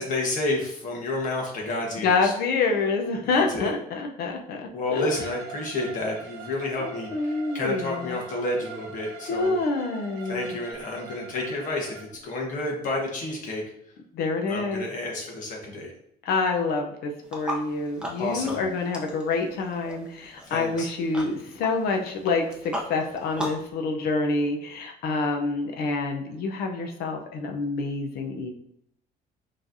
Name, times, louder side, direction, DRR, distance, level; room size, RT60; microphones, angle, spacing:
voice 1, 0.0-2.3 3.2-3.7 4.7-9.6 10.3-13.6 14.5-15.9 18.2-18.6 20.4-20.9, left 2 dB, 55° left, -1 dB, 1.3 m, -30 dB
voice 2, 2.0-5.1 6.8-8.2 9.3-10.5 14.1-14.9 16.2-28.5, left 3 dB, 75° left, 2 dB, 0.7 m, -27 dB
Bowed string instrument, 4.9-12.0, right 3 dB, 85° right, 0.9 m, -43 dB
sound 1, 17.2-23.7, equal, 5° right, 0.7 m, -38 dB
5.8 x 3.3 x 2.7 m, 0.74 s
cardioid pair, 165°, 16 cm